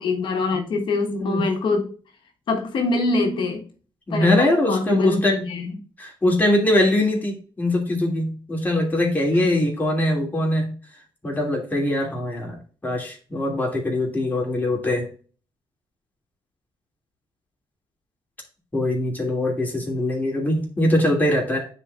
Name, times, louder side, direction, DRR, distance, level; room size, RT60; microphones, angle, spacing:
voice 1, 0.0-1.9 2.5-3.7 4.1-5.7, left 3 dB, 70° left, 1.4 m, -24 dB
voice 2, 1.1-1.4 4.1-5.5 6.0-10.7 11.2-12.6 12.8-15.1 18.7-21.7, left 1 dB, 20° left, 2.8 m, -22 dB
9.6 x 4.2 x 2.5 m
cardioid pair, 105°, 9 cm